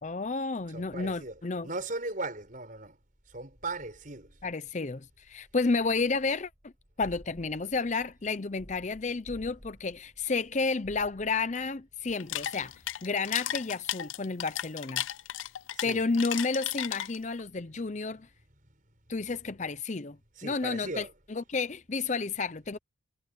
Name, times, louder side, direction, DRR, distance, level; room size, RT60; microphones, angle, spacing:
voice 1, 0.0-1.7 4.4-6.7 7.0-15.0 15.8-18.3 19.1-20.2 20.4-22.8, left 4 dB, 35° left, 0.6 m, -31 dB
voice 2, 0.7-3.0 3.3-4.4 15.8-16.0 20.4-21.1, right 2 dB, 45° right, 5.8 m, -38 dB
sound 1, 7.0-12.6 12.8-13.2, equal, 10° right, 5.1 m, -54 dB
sound 2, 12.1-17.4, left 12 dB, 80° left, 0.5 m, -35 dB
head